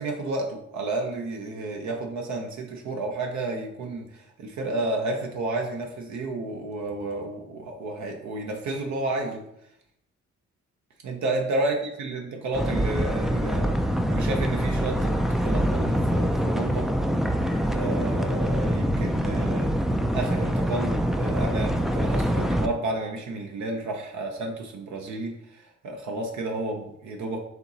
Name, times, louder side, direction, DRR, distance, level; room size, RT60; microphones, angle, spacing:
voice 1, 0.0-9.4 11.0-16.9 17.6-27.4, right 2 dB, 70° right, 2 dB, 0.7 m, -31 dB
sound 1, 12.5-22.7, equal, ahead, 0.3 m, -25 dB
4.3 x 2.9 x 3.9 m, 0.78 s
cardioid pair, 70°, 29 cm